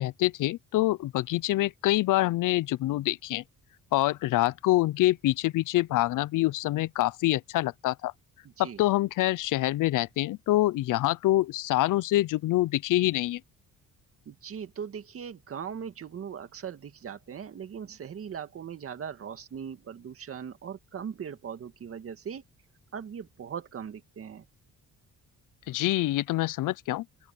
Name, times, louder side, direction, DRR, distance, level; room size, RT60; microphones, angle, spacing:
voice 1, 0.0-3.4 3.9-8.1 8.6-13.4 25.7-27.0, left 16 dB, 80° left, 0.6 m, -26 dB
voice 2, 8.4-8.8 14.3-22.4 22.9-24.5, right 7 dB, 45° right, 2.1 m, -39 dB
open air
cardioid pair, 145°, 31 cm